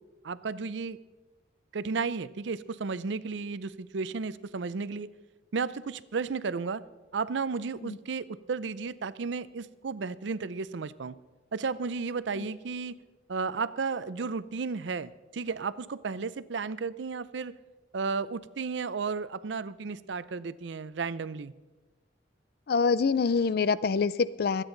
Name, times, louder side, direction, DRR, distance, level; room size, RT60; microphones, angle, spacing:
voice 1, 0.2-1.0 1.7-5.1 5.5-6.8 7.1-11.1 11.5-13.0 13.3-17.5 17.9-21.5, right 4 dB, 70° right, 16 dB, 0.5 m, -33 dB
voice 2, 22.7-24.6, left 5 dB, 55° left, 17 dB, 0.4 m, -26 dB
26.0 x 9.0 x 3.9 m, 1.2 s
head